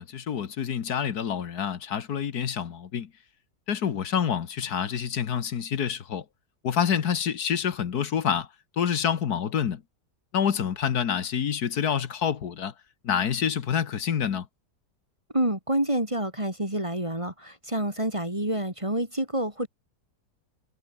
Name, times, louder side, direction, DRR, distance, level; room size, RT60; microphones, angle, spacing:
voice 1, 0.0-3.1 3.7-6.2 6.6-8.5 8.8-9.8 10.3-12.7 13.0-14.5, left 8 dB, 70° left, 1.8 m, -27 dB
voice 2, 15.3-19.7, right 1 dB, 20° right, 3.4 m, -28 dB
omnidirectional pair, 1.8 m